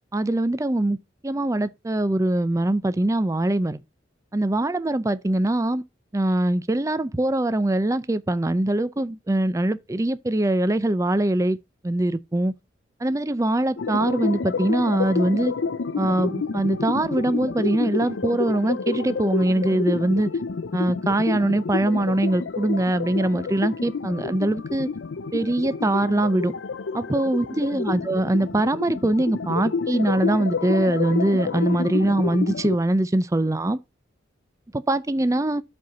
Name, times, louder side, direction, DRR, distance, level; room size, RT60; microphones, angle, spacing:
voice 1, 0.1-1.0 1.2-3.8 4.3-5.8 6.1-11.6 11.8-12.5 13.0-15.5 16.0-20.3 20.7-24.9 25.3-26.5 26.9-33.8 34.7-35.6, right 1 dB, 15° right, 0.5 m, -22 dB
sound 1, 13.8-32.8, left 4 dB, 80° left, 0.5 m, -29 dB
7.6 x 4.3 x 6.7 m
head